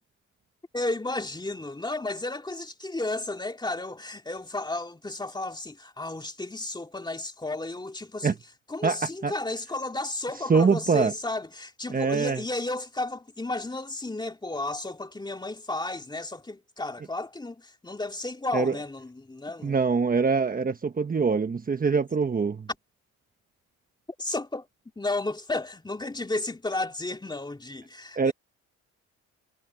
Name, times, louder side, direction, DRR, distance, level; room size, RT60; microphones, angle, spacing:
voice 1, 0.7-8.3 8.7-19.9 24.2-24.7 25.0-28.3, left 2 dB, 15° left, 2.8 m, -33 dB
voice 2, 8.8-9.3 10.5-11.1 11.9-12.4 18.5-18.8 19.6-22.7 28.2-28.3, right 5 dB, 30° right, 1.2 m, -24 dB
cardioid pair, 90°, 30 cm